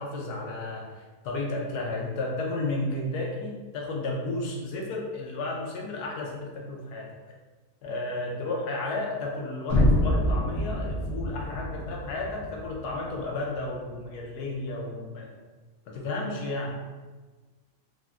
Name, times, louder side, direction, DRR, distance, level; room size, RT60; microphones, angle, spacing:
voice 1, 0.0-7.1 7.8-15.3 15.9-16.8, left 2 dB, 85° left, -1 dB, 1.1 m, -33 dB
sound 1, 9.7-13.7, left 1 dB, 70° left, 1.0 m, -27 dB
3.5 x 2.1 x 2.3 m, 1.3 s
omnidirectional pair, 1.6 m